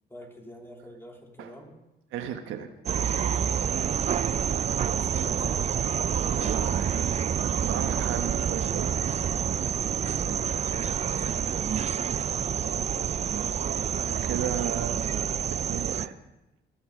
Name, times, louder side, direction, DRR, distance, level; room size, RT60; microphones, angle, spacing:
voice 1, 0.1-1.8 4.7-7.3 10.3-13.2, equal, 10° left, 1 dB, 2.9 m, -46 dB
voice 2, 2.1-2.7 6.3-7.1 7.4-9.0 9.8-9.9 14.2-15.4 15.7-16.1, right 9 dB, 90° right, 6 dB, 1.3 m, -35 dB
sound 1, 2.9-16.1, right 8 dB, 35° right, 0.4 m, -28 dB
18.5 x 8.8 x 5.0 m, 0.96 s
cardioid pair, 90°, 20 cm